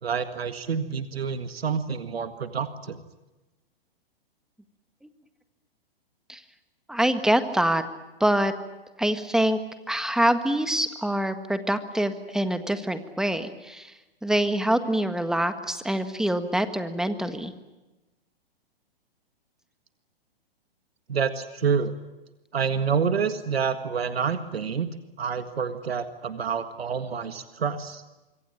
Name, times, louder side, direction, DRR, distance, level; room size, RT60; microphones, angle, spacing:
voice 1, 0.0-3.0 21.1-21.9 22.5-24.9 25.2-28.0, right 6 dB, 80° right, 10 dB, 1.8 m, -28 dB
voice 2, 6.9-7.8 8.2-8.5 9.0-9.6 9.9-13.9 14.2-17.5, right 1 dB, ahead, 9 dB, 1.6 m, -25 dB
26.0 x 23.0 x 8.9 m, 1.1 s
hypercardioid pair, 125°, 30 cm